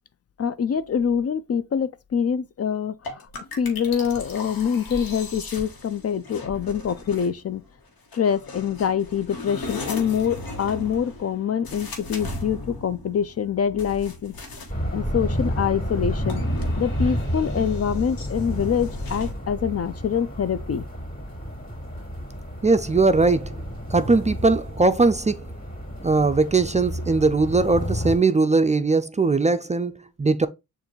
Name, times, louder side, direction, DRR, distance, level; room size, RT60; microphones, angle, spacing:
voice 1, 0.4-3.2 3.6-7.6 8.1-14.3 14.9-16.4 16.8-20.8, left 7 dB, 45° left, 0.5 m, -25 dB
sound 1, 3.0-7.5 8.1-14.8 15.8-19.3, left 2 dB, 85° left, 1.3 m, -37 dB
sound 2, 14.7-28.2, equal, 25° left, 2.5 m, -30 dB
voice 2, 22.6-23.5 23.9-25.4 26.0-29.9 30.2-30.5, right 3 dB, 20° right, 0.4 m, -20 dB
6.8 x 2.6 x 3.0 m
cardioid pair, 65°, 35 cm